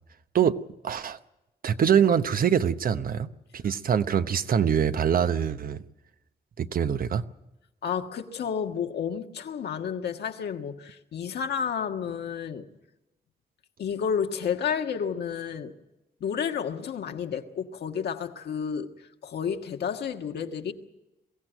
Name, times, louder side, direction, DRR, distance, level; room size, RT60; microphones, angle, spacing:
voice 1, 0.8-1.2 1.6-5.8 6.6-7.2, right 8 dB, 60° right, 0.9 m, -24 dB
voice 2, 7.8-12.7 13.8-15.7 16.2-20.7, left 7 dB, 80° left, 1.5 m, -31 dB
23.0 x 15.5 x 9.1 m
cardioid pair, 90°, 17 cm